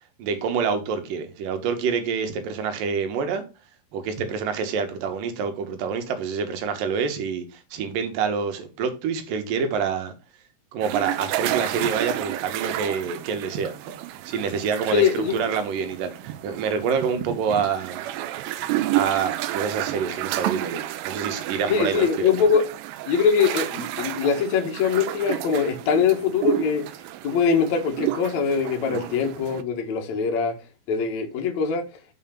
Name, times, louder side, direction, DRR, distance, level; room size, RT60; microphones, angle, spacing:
voice 1, 0.2-3.4 3.9-10.1 10.7-13.8 14.2-18.3 18.9-22.4 28.9-29.1, right 6 dB, 65° right, 2.3 m, -27 dB
sound 1, 10.8-29.6, right 14 dB, 85° right, 2.6 m, -31 dB
voice 2, 14.9-15.4 21.7-22.6 23.1-26.8 27.2-30.5 30.9-31.8, left 6 dB, 75° left, 1.6 m, -22 dB
6.5 x 5.7 x 5.8 m
omnidirectional pair, 5.6 m